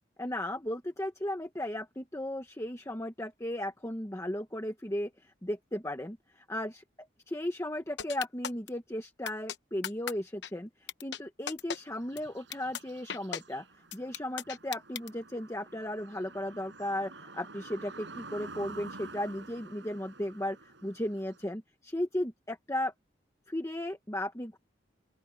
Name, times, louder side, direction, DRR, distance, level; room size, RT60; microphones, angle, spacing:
voice 1, 0.2-6.8 7.3-10.7 11.0-13.6 13.9-20.6 20.8-22.9 23.5-24.6, left 1 dB, 15° left, 1.3 m, -35 dB
sound 1, 8.0-8.7 9.3-9.6 9.8-10.1 10.4-10.5 10.9-11.2 11.5-11.8 12.2-12.3 12.5-12.8 13.1-13.4 13.9-15.1, left 8 dB, 65° left, 0.9 m, -36 dB
sound 2, 11.8-21.4, right 3 dB, 75° right, 5.6 m, -49 dB
open air
head